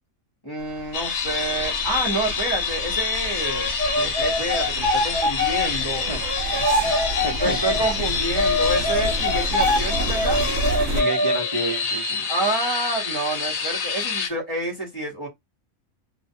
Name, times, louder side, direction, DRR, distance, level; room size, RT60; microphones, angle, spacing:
voice 1, 0.4-6.0 7.3-10.4 12.3-15.3, right 2 dB, 20° left, 0.7 m, -29 dB
sound 1, 0.6-11.0, right 1 dB, 80° right, 1.0 m, -30 dB
sound 2, 0.9-14.3, left 6 dB, 80° left, 1.1 m, -27 dB
voice 2, 1.2-1.6 6.0-6.2 6.6-6.9 7.2-7.8 10.9-12.3, right 1 dB, 40° right, 0.4 m, -31 dB
sound 3, 3.4-7.9 8.3-11.5, left 1 dB, 20° right, 0.9 m, -24 dB
2.5 x 2.1 x 2.6 m
omnidirectional pair, 1.5 m